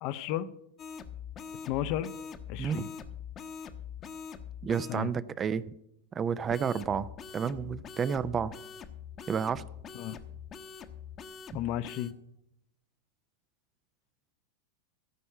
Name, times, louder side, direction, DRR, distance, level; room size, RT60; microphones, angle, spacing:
voice 1, 0.0-0.5 1.6-2.1 2.5-2.9 4.9-5.1 9.9-10.2 11.5-12.1, left 12 dB, 45° left, 14 dB, 0.6 m, -33 dB
sound 1, 0.8-5.0 6.5-12.1, left 7 dB, 30° left, 0.9 m, -44 dB
voice 2, 2.6-2.9 4.6-5.6 6.1-8.5 9.3-9.7, right 7 dB, 25° right, 16 dB, 0.4 m, -31 dB
14.5 x 5.4 x 8.0 m, 0.80 s
figure-of-eight pair, 90°, 0 cm